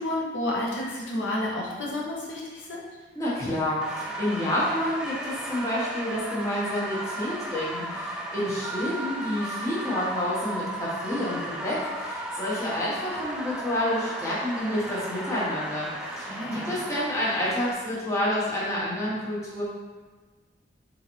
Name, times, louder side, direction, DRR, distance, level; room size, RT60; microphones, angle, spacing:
voice 1, 0.0-2.8 16.3-16.8, left 1 dB, 80° left, -4 dB, 0.8 m, -30 dB
voice 2, 3.1-19.6, left 1 dB, 15° left, -8 dB, 1.0 m, -29 dB
sound 1, 3.8-17.7, right 1 dB, 5° right, 0.3 m, -35 dB
4.7 x 2.6 x 3.0 m, 1.4 s
head